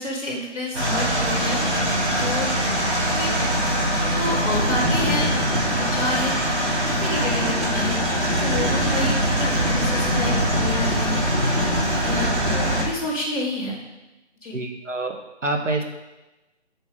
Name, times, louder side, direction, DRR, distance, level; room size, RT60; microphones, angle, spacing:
voice 1, 0.0-2.9 3.1-6.5 6.8-8.0 8.3-11.2 12.0-13.8 14.4-14.5, left 1 dB, 30° left, -2 dB, 2.8 m, -30 dB
sound 1, 0.7-12.8, equal, 65° right, 3.2 m, -22 dB
voice 2, 14.5-15.2 15.4-15.8, right 2 dB, 85° right, 3 dB, 1.6 m, -26 dB
8.0 x 5.1 x 6.6 m, 1.0 s
figure-of-eight pair, 175°, 36 cm